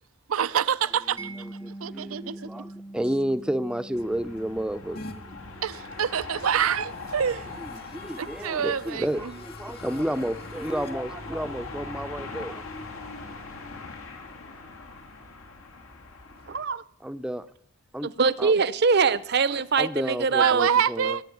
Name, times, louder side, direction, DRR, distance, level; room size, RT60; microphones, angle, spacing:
voice 1, 0.3-1.2 1.8-2.6 5.6-7.5 8.2-9.3 20.4-21.2, right 8 dB, 85° right, 0.5 m, -26 dB
voice 2, 1.1-5.0 7.6-12.6 17.0-17.4 17.9-18.1 18.4-18.5 19.8-21.2, right 1 dB, 5° right, 0.5 m, -31 dB
Mallet percussion, 1.2-7.9, right 2 dB, 25° left, 1.0 m, -45 dB
sound 1, 3.9-16.6, left 3 dB, 80° left, 2.1 m, -41 dB
sound 2, 5.0-5.2 6.5-10.9, left 2 dB, 50° left, 1.9 m, -47 dB
voice 3, 16.5-16.8 18.0-20.8, right 5 dB, 50° right, 0.7 m, -23 dB
18.0 x 7.8 x 9.3 m
head